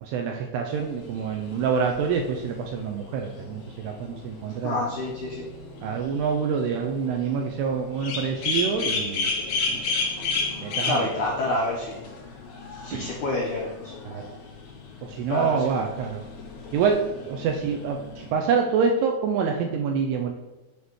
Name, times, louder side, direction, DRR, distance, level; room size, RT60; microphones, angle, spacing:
voice 1, 0.0-4.8 5.8-9.3 9.7-9.8 10.2-10.3 10.6-11.0 12.9-13.1 14.1-14.2 15.0-16.2 16.7-20.3, right 6 dB, 80° right, 3 dB, 2.4 m, -26 dB
sound 1, 0.7-18.3, left 4 dB, 60° left, 3.2 m, -34 dB
voice 2, 4.6-5.5 10.8-12.0 12.7-13.9 15.3-15.9, left 2 dB, 85° left, -3 dB, 1.7 m, -28 dB
8.8 x 7.1 x 3.2 m, 1.1 s
omnidirectional pair, 5.3 m